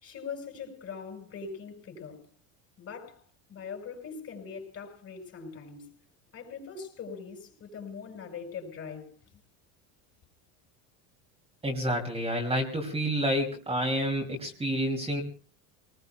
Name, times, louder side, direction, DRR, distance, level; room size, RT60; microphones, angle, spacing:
voice 1, 0.0-2.3 2.8-3.2 3.5-5.8 6.3-9.1, left 5 dB, 35° left, 5.6 m, -41 dB
voice 2, 11.6-15.2, equal, 15° right, 2.8 m, -29 dB
29.5 x 19.5 x 2.3 m
supercardioid pair, 120°, 41 cm